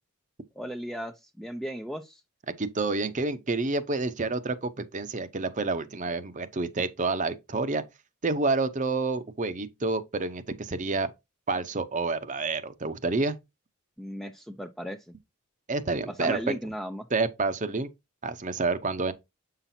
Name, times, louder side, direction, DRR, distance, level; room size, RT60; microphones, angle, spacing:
voice 1, 0.6-2.2 14.0-15.0 16.1-17.1, equal, ahead, 0.4 m, -36 dB
voice 2, 2.6-7.8 8.2-11.1 11.5-13.4 15.7-16.5 17.1-17.9 18.2-19.1, right 3 dB, 35° right, 0.7 m, -29 dB
7.9 x 5.8 x 2.7 m
head